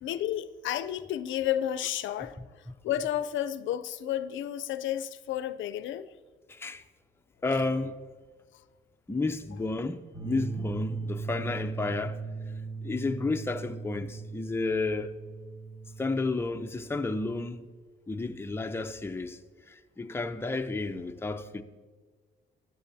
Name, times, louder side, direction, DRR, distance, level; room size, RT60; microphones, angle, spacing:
voice 1, 0.0-2.4 2.8-6.1, left 11 dB, 75° left, 0.4 m, -31 dB
voice 2, 6.5-6.8 7.4-8.0 9.1-12.2 12.8-15.1 16.0-17.7 18.1-19.4 19.7-21.6, left 3 dB, 10° left, 0.6 m, -32 dB
sound 1, 10.1-17.4, right 4 dB, 25° right, 1.7 m, -38 dB
14.0 x 9.9 x 2.7 m
cardioid pair, 90°, 20 cm